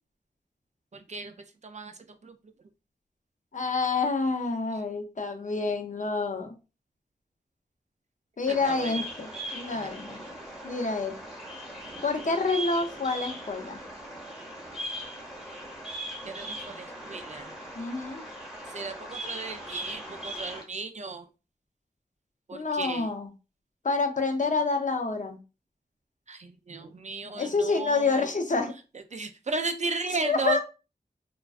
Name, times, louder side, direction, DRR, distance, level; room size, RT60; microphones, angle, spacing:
voice 1, 0.9-1.3 1.6-2.4 4.7-4.8 8.5-8.9 9.7-9.9 16.2-17.5 18.7-21.3 22.5-23.1 26.3-28.3 29.1-30.6, right 3 dB, 45° right, 7 dB, 0.4 m, -35 dB
voice 2, 3.5-6.5 8.4-10.2 10.6-11.1 12.0-13.8 17.8-18.2 22.5-23.3 23.8-25.4 27.4-28.7 30.2-30.6, left 3 dB, 50° left, 6 dB, 0.6 m, -28 dB
Bird vocalization bird call bird song, 8.5-20.6, right 1 dB, ahead, 0.9 m, -39 dB
2.4 x 2.2 x 2.3 m, 0.30 s
wide cardioid pair, 50°, 17 cm